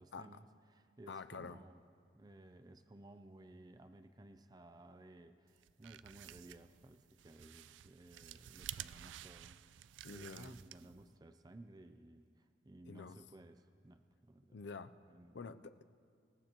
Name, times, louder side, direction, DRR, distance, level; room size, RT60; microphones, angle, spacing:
voice 1, 0.0-1.8 2.1-14.6 15.1-15.4, right 1 dB, 20° right, 8 dB, 0.5 m, -58 dB
voice 2, 1.1-1.6 10.0-10.5 12.9-13.2 14.5-14.9 15.3-15.8, left 4 dB, 75° left, 11 dB, 0.5 m, -48 dB
sound 1, 5.6-11.1, right 12 dB, 85° right, 0.3 m, -52 dB
26.0 x 15.5 x 3.0 m, 2.3 s
head